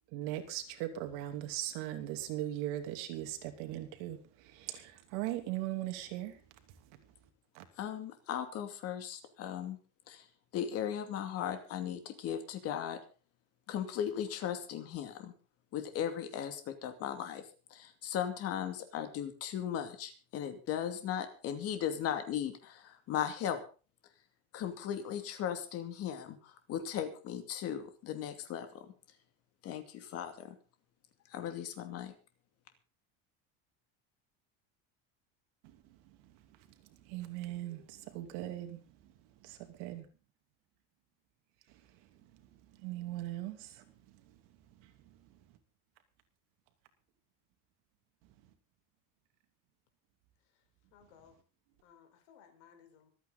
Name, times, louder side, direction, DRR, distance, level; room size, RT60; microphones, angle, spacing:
voice 1, 0.1-4.2 4.5-6.4 7.5-7.6 37.1-38.8 39.4-40.1 42.8-43.8, right 14 dB, 70° right, 7 dB, 2.8 m, -39 dB
voice 2, 7.8-9.8 10.1-10.3 10.5-13.0 13.7-15.3 15.7-17.4 17.7-23.6 24.5-28.9 29.6-30.6 31.3-32.1, left 9 dB, 40° left, 7 dB, 2.6 m, -37 dB
voice 3, 50.9-51.4 51.8-53.1, left 8 dB, 75° left, 6 dB, 4.7 m, -60 dB
25.0 x 9.3 x 4.1 m, 0.36 s
cardioid pair, 170°, 35 cm